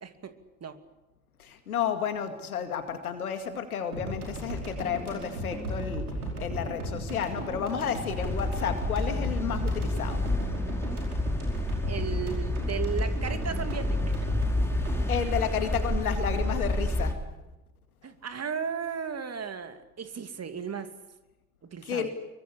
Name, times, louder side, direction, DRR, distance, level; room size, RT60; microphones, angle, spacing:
voice 1, 0.0-0.3 0.6-0.8 11.9-14.3 15.0-15.1 18.0-20.9 21.6-22.1, right 6 dB, 35° right, 9 dB, 2.6 m, -35 dB
voice 2, 1.4-6.0 6.4-10.2 15.1-17.2 21.8-22.1, left 7 dB, 80° left, 8 dB, 2.3 m, -31 dB
sound 1, 3.9-16.4, right 1 dB, 85° right, 5.0 m, -36 dB
sound 2, 8.2-17.1, left 1 dB, 5° left, 3.8 m, -29 dB
25.5 x 23.0 x 8.5 m, 1.0 s
figure-of-eight pair, 50°, 43 cm